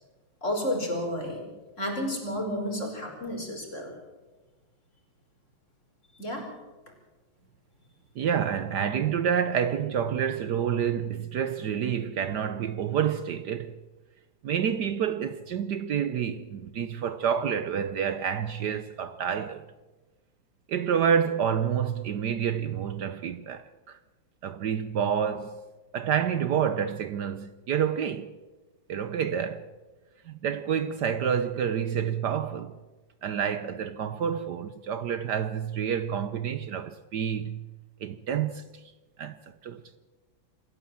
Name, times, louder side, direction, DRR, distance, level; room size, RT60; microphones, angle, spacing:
voice 1, 0.4-1.4 1.8-3.9 6.1-6.5, left 1 dB, 35° left, 5.1 m, -31 dB
voice 2, 8.2-13.8 14.4-19.7 20.7-24.0 24.4-25.6 25.9-28.3 28.9-29.7 30.3-32.7 33.2-37.6 38.0-38.6 39.2-39.4 39.6-39.8, right 8 dB, 65° right, 1.3 m, -28 dB
26.5 x 15.0 x 7.5 m
omnidirectional pair, 2.1 m